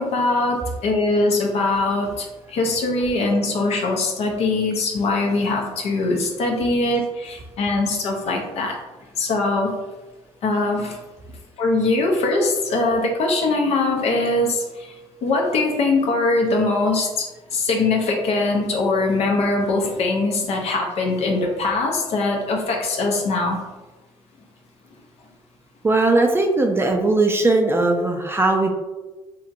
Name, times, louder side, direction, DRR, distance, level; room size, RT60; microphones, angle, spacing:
voice 1, 0.0-8.8 9.2-9.7 10.4-11.0 11.6-14.9 15.2-23.6, left 2 dB, 60° left, 1 dB, 0.6 m, -22 dB
voice 2, 25.8-28.7, right 2 dB, 20° right, 3 dB, 0.3 m, -19 dB
2.8 x 2.6 x 2.5 m, 1.2 s
supercardioid pair, 75°, 12 cm